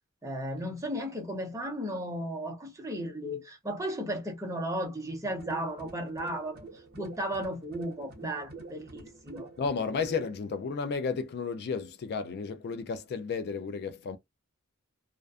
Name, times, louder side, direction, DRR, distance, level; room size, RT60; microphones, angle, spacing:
voice 1, 0.2-6.6 7.0-9.5, equal, 15° right, 0.6 m, -35 dB
sound 1, 5.3-10.4, right 3 dB, 45° right, 0.8 m, -46 dB
voice 2, 9.6-14.2, left 5 dB, 45° left, 0.3 m, -33 dB
2.5 x 2.2 x 2.3 m
head